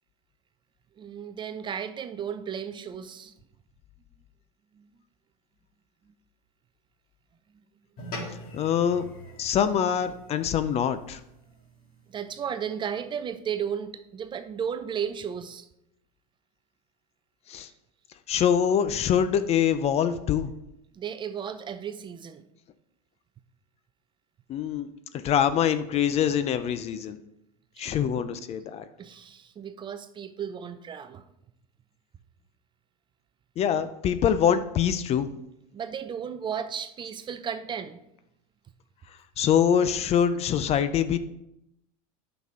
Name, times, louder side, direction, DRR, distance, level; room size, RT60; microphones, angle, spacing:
voice 1, 1.0-3.3 4.7-4.9 12.1-15.7 20.9-22.5 27.8-28.0 29.0-31.2 35.7-38.0, right 8 dB, 25° right, 10 dB, 0.5 m, -34 dB
sound 1, 8.0-12.6, left 1 dB, 50° left, 3.3 m, -44 dB
voice 2, 8.5-9.1 9.4-11.2 17.5-17.7 18.3-20.5 24.5-24.9 25.2-27.2 27.8-28.8 33.6-35.3 39.4-41.2, left 8 dB, 35° left, 12 dB, 0.5 m, -24 dB
9.3 x 6.0 x 3.7 m, 0.84 s
supercardioid pair, 115°, 19 cm